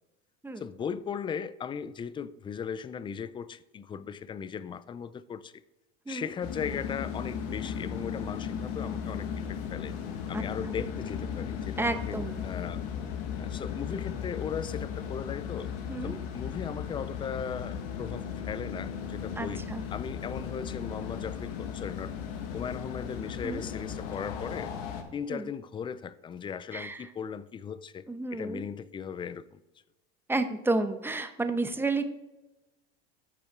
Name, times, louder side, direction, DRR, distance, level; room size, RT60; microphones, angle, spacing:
voice 1, 0.6-5.5 6.1-9.9 10.3-12.8 13.4-15.7 16.0-19.6 19.9-22.1 22.5-24.7 25.1-29.6, left 7 dB, 15° left, 0.3 m, -37 dB
sound 1, 6.4-25.0, left 7 dB, 70° left, 1.5 m, -36 dB
voice 2, 10.3-10.7 11.8-12.4 15.9-16.2 19.4-19.8 23.4-23.7 25.3-25.5 26.7-27.1 28.1-28.6 30.3-32.0, right 2 dB, 5° right, 0.8 m, -31 dB
13.5 x 5.3 x 3.6 m
hypercardioid pair, 100°, 31 cm